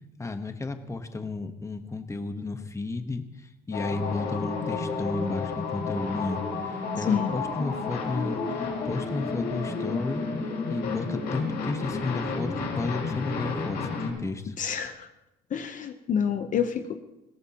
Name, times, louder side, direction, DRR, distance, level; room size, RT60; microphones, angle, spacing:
voice 1, 0.2-8.4 8.8-10.2 10.7-14.6, left 3 dB, 15° left, 7 dB, 1.2 m, -33 dB
sound 1, 3.7-14.1, left 4 dB, 75° left, 4.8 m, -31 dB
voice 2, 14.6-15.1 15.5-17.0, left 7 dB, 50° left, 8 dB, 0.9 m, -28 dB
21.5 x 17.0 x 3.0 m, 0.94 s
cardioid pair, 110°, 17 cm